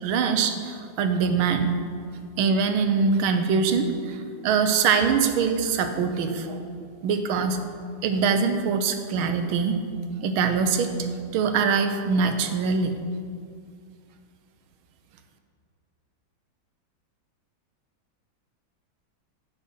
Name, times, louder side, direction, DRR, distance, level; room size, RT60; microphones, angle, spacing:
voice 1, 0.0-1.7 2.4-6.6 7.0-7.6 8.0-9.8 10.2-11.1 11.3-12.9, right 5 dB, 90° right, 8 dB, 1.7 m, -23 dB
9.7 x 8.7 x 5.6 m, 2.2 s
omnidirectional pair, 2.2 m